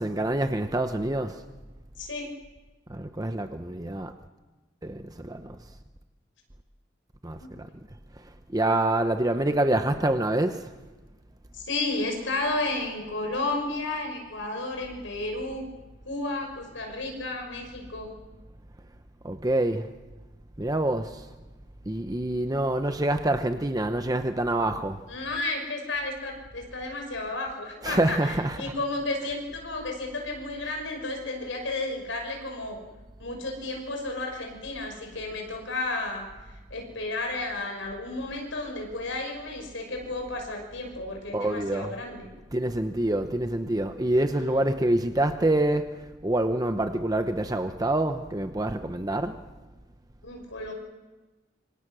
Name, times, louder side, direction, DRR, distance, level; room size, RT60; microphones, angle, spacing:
voice 1, 0.0-1.4 2.9-4.1 4.8-5.6 7.2-7.7 8.2-10.7 19.2-19.9 20.6-21.3 21.9-25.0 27.8-28.7 29.2-29.4 41.3-42.0 42.5-49.4, right 1 dB, 20° right, 0.8 m, -26 dB
voice 2, 2.0-2.3 11.5-15.7 16.0-18.1 25.1-32.8 33.2-36.3 36.7-42.3 44.3-44.6 50.2-50.7, left 2 dB, 85° left, 5.7 m, -32 dB
26.5 x 25.0 x 6.3 m
head